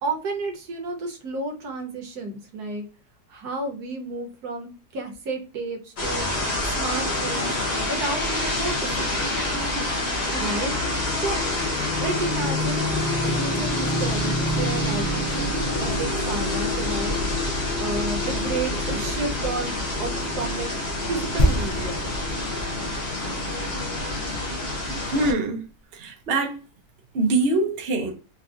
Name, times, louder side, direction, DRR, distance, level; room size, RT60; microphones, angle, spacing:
voice 1, 0.0-2.8 3.3-6.4 6.8-7.6 7.9-9.2 10.3-10.7 11.2-11.4 12.0-12.9 13.4-17.2 17.8-19.7 20.0-20.7 21.1-22.0, right 3 dB, 75° right, 1.3 m, -31 dB
sound 1, 6.0-25.3, left 1 dB, 45° left, 1.0 m, -26 dB
sound 2, 21.4-25.3 25.6-25.7, equal, 75° left, 0.4 m, -28 dB
voice 2, 25.1-25.7 25.9-26.5 27.1-28.1, right 2 dB, 55° right, 0.7 m, -23 dB
3.6 x 2.5 x 2.4 m
omnidirectional pair, 1.7 m